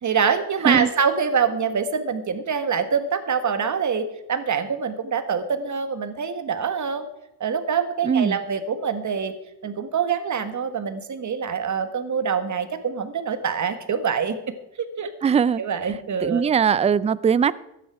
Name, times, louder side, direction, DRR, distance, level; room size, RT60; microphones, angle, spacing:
voice 1, 0.0-7.1 7.4-9.3 9.6-14.4 14.8-15.1 15.6-16.4, right 6 dB, 40° right, 10 dB, 1.5 m, -25 dB
voice 2, 8.0-8.4 15.2-15.6 16.2-17.5, right 7 dB, 15° right, 19 dB, 0.3 m, -20 dB
14.0 x 10.0 x 4.8 m, 0.88 s
cardioid pair, 90°, 45 cm